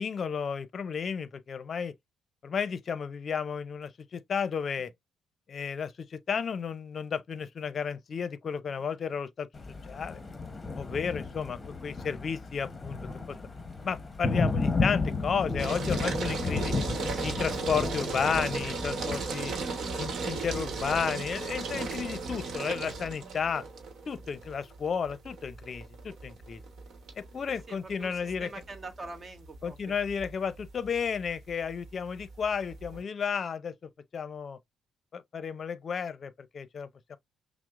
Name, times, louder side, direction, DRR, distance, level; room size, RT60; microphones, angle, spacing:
voice 1, 0.0-1.9 2.4-4.9 5.5-9.5 9.9-10.2 10.8-13.0 13.3-13.4 13.8-16.7 17.2-19.5 20.0-23.6 24.1-26.6 27.2-28.5 29.6-33.7 34.1-34.6 35.1-37.2, left 6 dB, 50° left, 0.6 m, -33 dB
Thunder, 9.5-19.2, left 3 dB, 25° left, 0.9 m, -33 dB
sound 1, 15.6-33.0, right 4 dB, 70° right, 1.0 m, -36 dB
voice 2, 27.5-29.9, right 3 dB, 30° right, 1.1 m, -45 dB
5.8 x 2.0 x 2.4 m
cardioid pair, 90°, 0 cm